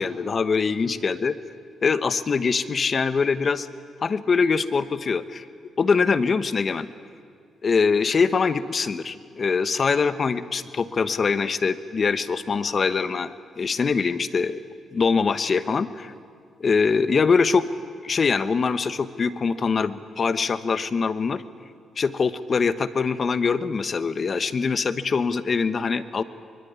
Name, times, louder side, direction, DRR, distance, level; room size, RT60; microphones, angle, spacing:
voice 1, 0.0-1.4 1.8-3.7 4.0-5.4 5.8-6.9 7.6-13.3 13.6-14.6 14.9-16.1 16.6-17.7 18.0-21.4 22.0-26.2, left 5 dB, 40° left, 13 dB, 1.0 m, -23 dB
23.5 x 22.0 x 9.6 m, 2.2 s
cardioid pair, 115°, 0 cm